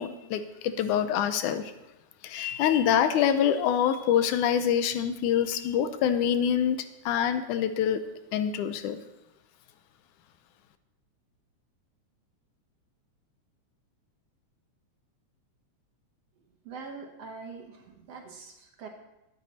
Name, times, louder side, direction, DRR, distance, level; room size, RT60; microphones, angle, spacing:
voice 1, 0.0-1.7 2.2-6.8 7.1-8.0 8.3-9.0, left 9 dB, 85° left, 10 dB, 2.2 m, -25 dB
voice 2, 16.6-18.9, right 4 dB, 60° right, 2 dB, 2.1 m, -43 dB
13.0 x 9.3 x 4.2 m, 0.92 s
omnidirectional pair, 3.5 m